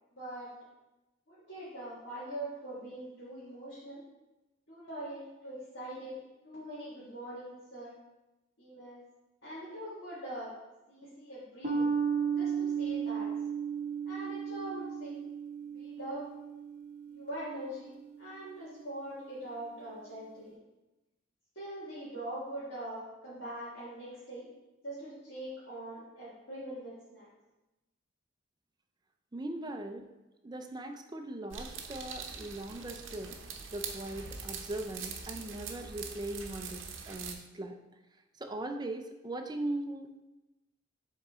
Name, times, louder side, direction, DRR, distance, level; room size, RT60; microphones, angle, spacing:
voice 1, 0.2-0.5 1.3-4.0 4.7-7.9 8.6-9.0 9.4-10.5 10.9-11.9 12.3-13.4 14.1-15.2 15.6-16.3 17.1-20.6 21.6-24.5 24.8-27.3, right 1 dB, 60° left, -11 dB, 1.9 m, -43 dB
sound 1, 11.6-18.4, right 6 dB, 40° right, 0.9 m, -35 dB
voice 2, 29.3-30.0 30.4-33.4 33.7-37.8 38.4-40.1, right 1 dB, 20° right, 5 dB, 0.5 m, -39 dB
sound 2, 31.5-37.3, right 5 dB, 75° right, 0.7 m, -43 dB
7.3 x 3.8 x 3.6 m, 1.0 s
head